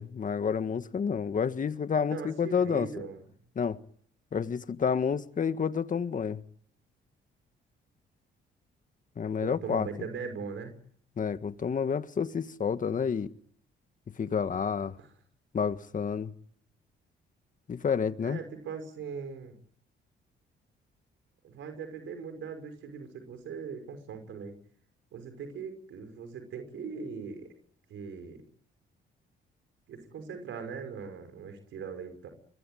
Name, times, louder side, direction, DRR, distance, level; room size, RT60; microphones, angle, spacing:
voice 1, 0.0-2.9 3.6-3.8 4.3-6.4 9.2-9.9 11.2-13.3 14.2-15.0 15.5-16.3 17.7-18.4, left 6 dB, 40° left, 1.7 m, -29 dB
voice 2, 1.9-3.2 9.4-10.7 15.0-15.1 18.2-19.6 21.4-24.5 25.1-27.5 27.9-28.4 29.9-32.3, right 6 dB, 75° right, 6.0 m, -40 dB
26.0 x 24.0 x 9.2 m
cardioid pair, 90°, 20 cm